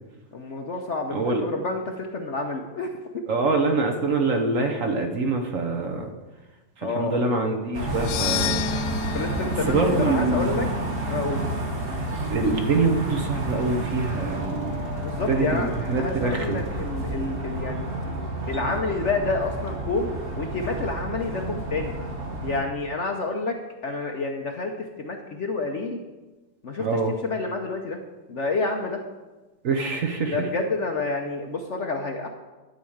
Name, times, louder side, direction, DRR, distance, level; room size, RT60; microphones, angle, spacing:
voice 1, 0.3-2.9 6.8-7.2 9.1-10.7 11.1-11.5 15.0-15.7 16.0-17.9 18.5-22.0 22.4-23.6 23.8-24.7 25.0-26.0 26.6-28.0 28.3-29.0 30.3-32.3, left 3 dB, 55° left, 3 dB, 0.9 m, -29 dB
voice 2, 1.1-1.4 3.3-6.1 6.8-8.7 9.7-10.7 12.3-14.8 15.3-16.6 26.8-27.1 29.6-30.5, right 3 dB, 55° right, 4 dB, 1.2 m, -25 dB
sound 1, 7.7-22.6, right 1 dB, 35° right, 1.7 m, -30 dB
sound 2, 7.9-12.3, left 7 dB, 90° left, 1.4 m, -32 dB
12.0 x 5.0 x 7.2 m, 1.2 s
omnidirectional pair, 1.9 m